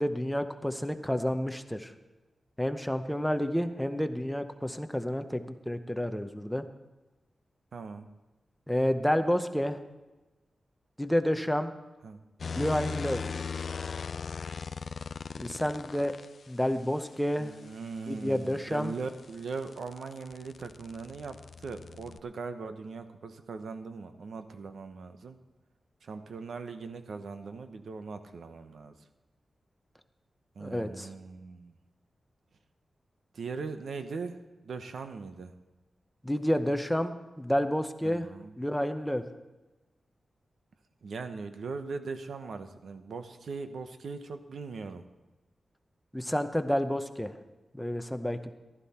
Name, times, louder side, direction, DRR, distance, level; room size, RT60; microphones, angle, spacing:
voice 1, 0.0-1.9 2.6-6.6 8.7-9.8 11.0-11.7 12.5-13.2 15.4-16.1 16.5-17.5 18.1-18.9 30.6-31.1 36.2-38.3 38.6-39.2 46.1-47.3 47.7-48.5, equal, 5° left, 8 dB, 0.7 m, -29 dB
voice 2, 7.7-8.1 12.0-12.2 17.4-25.4 26.0-28.9 30.6-31.7 33.3-34.4 34.6-35.5 38.0-38.5 41.0-45.0, right 4 dB, 80° right, 8 dB, 1.0 m, -40 dB
sound 1, 12.4-16.3 18.5-22.2, left 5 dB, 55° left, 0.3 m, -39 dB
15.0 x 12.5 x 4.3 m, 1.1 s
wide cardioid pair, 130°, 0 cm